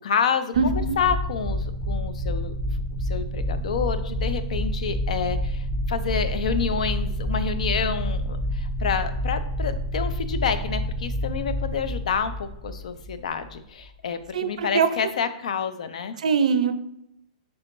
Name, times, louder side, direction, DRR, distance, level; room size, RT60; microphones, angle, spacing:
voice 1, 0.0-2.5 3.0-16.2, left 6 dB, 75° left, 11 dB, 0.4 m, -28 dB
sound 1, 0.5-13.5, equal, 5° right, 0.7 m, -28 dB
voice 2, 0.6-1.0 14.3-14.9 16.2-16.7, right 6 dB, 85° right, 10 dB, 0.4 m, -22 dB
3.4 x 3.3 x 2.9 m, 0.80 s
hypercardioid pair, 165°, 4 cm